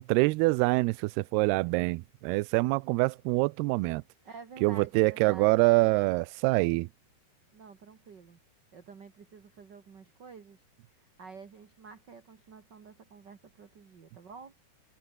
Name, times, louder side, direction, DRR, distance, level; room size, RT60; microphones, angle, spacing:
voice 1, 0.0-4.0 4.6-6.9, right 24 dB, 85° right, 2.5 m, -25 dB
voice 2, 4.2-5.6 7.5-8.4 8.7-14.5, right 5 dB, 45° right, 1.5 m, -50 dB
omnidirectional pair, 4.7 m